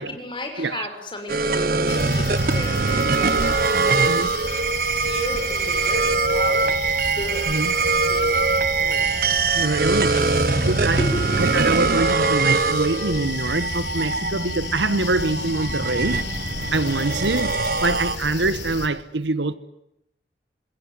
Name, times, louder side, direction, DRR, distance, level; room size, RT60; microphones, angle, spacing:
voice 1, 0.1-3.5 3.8-4.0 4.9-6.7 7.1-7.5 7.8-9.3 10.1-11.2, left 1 dB, 25° left, 6.1 m, -34 dB
voice 2, 0.6-0.9 4.1-4.3 7.5-7.7 9.5-10.1 10.6-11.0 11.4-16.2 16.7-17.5 17.8-19.6, right 2 dB, 85° right, 1.4 m, -24 dB
sound 1, 1.3-18.6, right 4 dB, 55° right, 1.1 m, -22 dB
sound 2, 1.9-18.9, left 3 dB, 85° left, 3.6 m, -32 dB
26.5 x 21.5 x 9.7 m
head